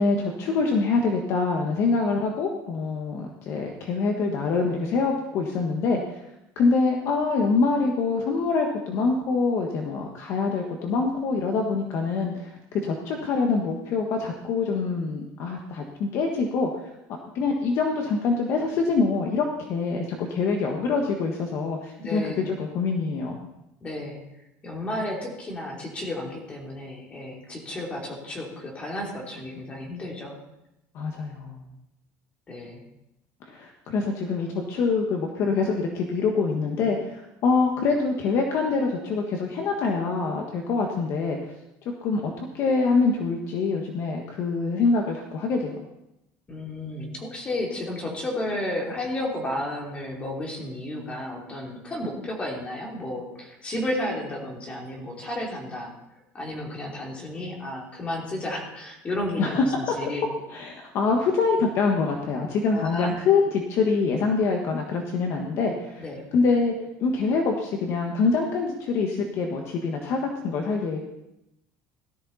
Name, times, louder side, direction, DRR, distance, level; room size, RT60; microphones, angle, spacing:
voice 1, 0.0-6.0 6.5-12.5 12.8-16.8 17.3-23.3 30.9-31.6 33.5-41.4 42.0-45.7 59.4-60.0 60.5-66.0 66.3-66.7 67.0-71.0, left 4 dB, 45° left, 2 dB, 1.5 m, -25 dB
voice 2, 22.0-22.5 23.8-24.2 24.6-30.3 32.5-32.8 46.5-55.9 56.3-60.2 62.7-63.2 66.0-66.2, left 1 dB, 20° left, 0 dB, 3.0 m, -32 dB
18.0 x 13.5 x 4.2 m, 0.88 s
cardioid pair, 180°, 7 cm